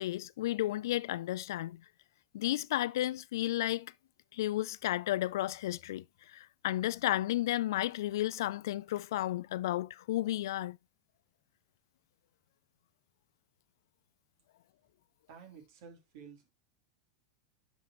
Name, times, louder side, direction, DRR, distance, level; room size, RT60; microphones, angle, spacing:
voice 1, 0.0-1.8 2.3-3.9 4.3-10.8, left 14 dB, 70° left, 0.4 m, -33 dB
voice 2, 15.3-16.5, right 6 dB, 60° right, 3.1 m, -52 dB
10.5 x 5.4 x 2.9 m
hypercardioid pair, 95°, 2 cm